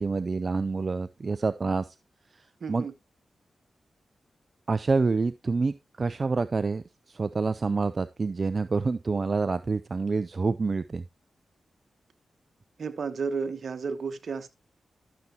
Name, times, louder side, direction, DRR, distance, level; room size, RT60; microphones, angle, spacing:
voice 1, 0.0-2.0 2.3-2.9 4.7-11.0, right 4 dB, 50° right, 0.5 m, -27 dB
voice 2, 2.6-2.9 12.8-14.5, right 5 dB, 65° right, 1.1 m, -32 dB
12.0 x 7.0 x 2.9 m
cardioid pair, 50°, 0 cm